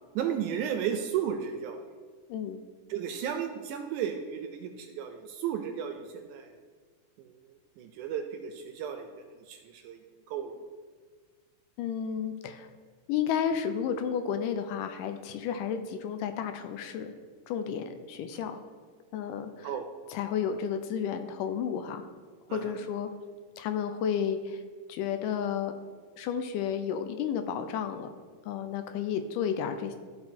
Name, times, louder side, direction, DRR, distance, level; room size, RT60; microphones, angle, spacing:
voice 1, 0.2-1.8 2.9-6.5 7.2-7.3 7.8-10.0 10.3-10.5 19.6-19.9 22.5-22.8, right 8 dB, 80° right, 6 dB, 1.9 m, -34 dB
voice 2, 2.3-2.6 11.8-12.7 13.1-17.1 17.5-18.6 19.1-19.7 20.1-22.0 22.5-23.1 23.6-24.6 24.9-25.7 26.2-28.1 28.5-30.0, left 8 dB, 80° left, 8 dB, 2.1 m, -32 dB
13.0 x 4.5 x 4.2 m, 1.5 s
omnidirectional pair, 3.9 m